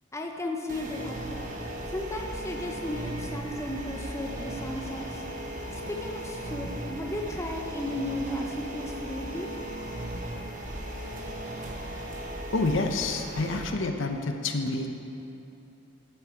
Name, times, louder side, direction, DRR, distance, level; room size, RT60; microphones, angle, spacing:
voice 1, 0.1-1.5 1.9-5.2 5.7-9.5, left 1 dB, 15° left, 1 dB, 0.8 m, -35 dB
sound 1, 0.7-13.7, right 1 dB, 40° right, 1.1 m, -37 dB
voice 2, 12.5-14.9, left 3 dB, 75° left, 5 dB, 0.7 m, -28 dB
12.5 x 7.8 x 4.9 m, 2.9 s
head